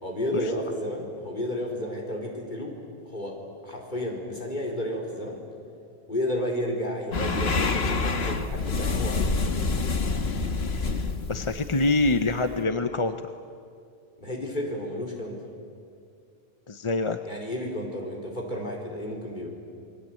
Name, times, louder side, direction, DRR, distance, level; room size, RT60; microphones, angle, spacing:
voice 1, 0.0-2.8 3.1-3.4 3.6-5.4 6.1-9.3 14.2-15.4 17.2-19.5, left 1 dB, 50° left, 0 dB, 4.7 m, -32 dB
sound 1, 7.1-12.6, left 3 dB, 75° left, 1.7 m, -27 dB
voice 2, 11.3-13.2 16.7-17.2, left 2 dB, 30° left, 8 dB, 0.8 m, -25 dB
28.5 x 21.0 x 9.1 m, 2.4 s
omnidirectional pair, 1.1 m